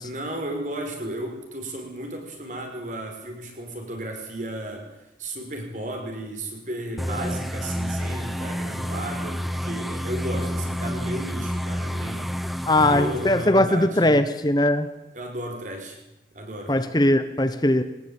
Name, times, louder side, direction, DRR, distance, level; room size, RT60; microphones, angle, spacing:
voice 1, 0.0-14.0 15.1-16.0 16.3-16.8, right 1 dB, 45° right, 3 dB, 5.7 m, -34 dB
sound 1, 7.0-13.5, equal, ahead, 1.0 m, -29 dB
voice 2, 12.7-14.9 16.7-17.8, left 1 dB, 25° left, 10 dB, 1.1 m, -20 dB
22.5 x 19.0 x 9.1 m, 0.90 s
head